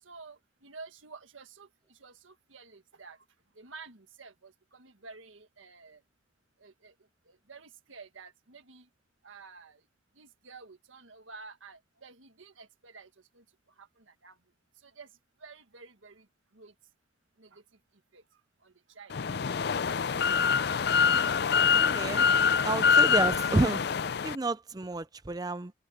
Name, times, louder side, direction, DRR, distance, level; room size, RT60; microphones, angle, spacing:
voice 1, 0.0-3.3 3.6-6.0 6.6-6.9 7.3-8.9 9.2-9.8 10.2-13.4 13.8-14.4 14.8-15.1 15.4-16.3 16.5-16.7 17.4-17.6 18.1-18.2 18.6-19.3 22.0-22.5, right 4 dB, 85° right, 1.6 m, -51 dB
sound 1, 19.1-24.4, left 6 dB, 55° left, 0.4 m, -25 dB
voice 2, 21.7-22.3 22.6-23.8 24.2-25.7, right 2 dB, 20° right, 0.5 m, -30 dB
head